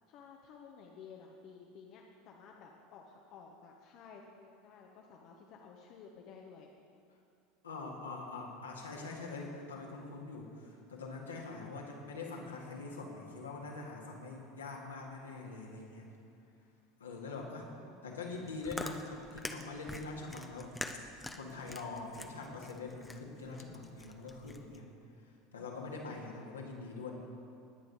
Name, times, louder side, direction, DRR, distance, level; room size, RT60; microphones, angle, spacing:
voice 1, 0.1-6.7 17.4-18.1, left 5 dB, 50° left, 1 dB, 1.0 m, -54 dB
voice 2, 7.6-16.1 17.0-17.7 18.0-20.7 21.4-24.9 25.5-27.1, left 3 dB, 75° left, -2 dB, 2.0 m, -44 dB
Chewing mastication, 18.3-24.8, left 2 dB, 10° left, 0.8 m, -45 dB
19.5 x 9.4 x 4.1 m, 2.7 s
figure-of-eight pair, 75°, 0 cm